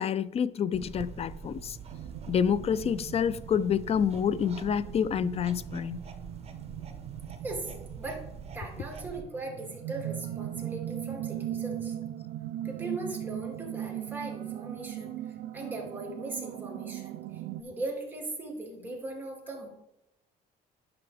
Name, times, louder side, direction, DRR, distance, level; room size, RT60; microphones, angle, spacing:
voice 1, 0.0-1.8 2.3-6.0, left 8 dB, 35° left, 0.4 m, -28 dB
sound 1, 0.7-9.2, right 5 dB, 35° right, 1.0 m, -45 dB
sound 2, 1.9-17.6, right 12 dB, 90° right, 0.5 m, -39 dB
voice 2, 7.4-8.2 8.5-12.0 12.6-19.7, right 2 dB, 10° right, 2.6 m, -39 dB
10.5 x 5.8 x 3.4 m
cardioid pair, 110°, 17 cm